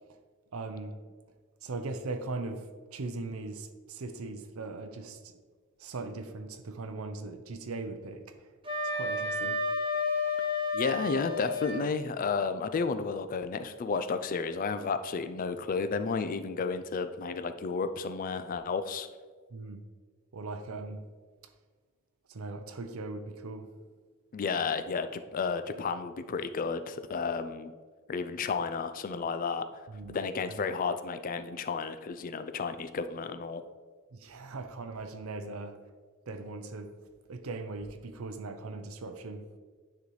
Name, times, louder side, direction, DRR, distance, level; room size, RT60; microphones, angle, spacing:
voice 1, 0.5-1.0 1.6-5.3 5.8-8.5 8.9-9.6 19.5-19.8 20.3-21.1 21.4-21.5 22.3-23.7 29.9-30.6 34.1-35.8 36.3-36.9 37.3-39.5, right 3 dB, 70° right, 8 dB, 0.6 m, -39 dB
Wind instrument woodwind instrument, 8.6-11.8, left 3 dB, 20° right, 0.9 m, -31 dB
voice 2, 10.7-19.1 24.3-27.7 28.1-29.9 30.1-33.6, left 5 dB, 40° left, 11 dB, 0.3 m, -32 dB
9.7 x 4.1 x 3.1 m, 1.5 s
head